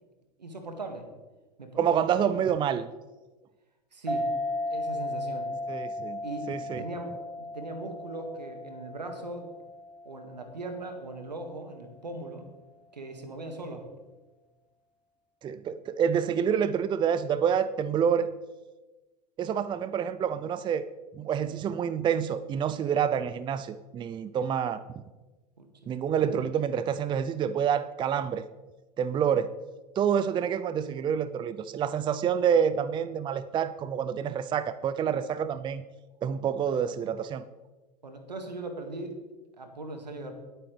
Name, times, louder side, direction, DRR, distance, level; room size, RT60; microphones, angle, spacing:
voice 1, 0.4-1.1 1.6-2.0 2.3-2.4 3.9-4.3 4.7-5.5 6.2-6.5 6.8-9.5 10.0-12.5 12.9-13.9 25.6-25.9 36.7-36.8 38.0-39.2 39.6-40.3, right 2 dB, 90° right, 5 dB, 1.9 m, -39 dB
voice 2, 1.8-2.9 5.7-6.2 6.5-6.8 15.4-18.3 19.4-20.8 21.1-24.8 25.9-28.5 29.0-29.5 30.0-35.8 36.2-37.4, right 8 dB, 20° right, 13 dB, 0.5 m, -27 dB
sound 1, 4.1-11.1, left 1 dB, 5° right, 1.4 m, -35 dB
20.0 x 8.8 x 3.3 m, 1.2 s
hypercardioid pair, 90°, 21 cm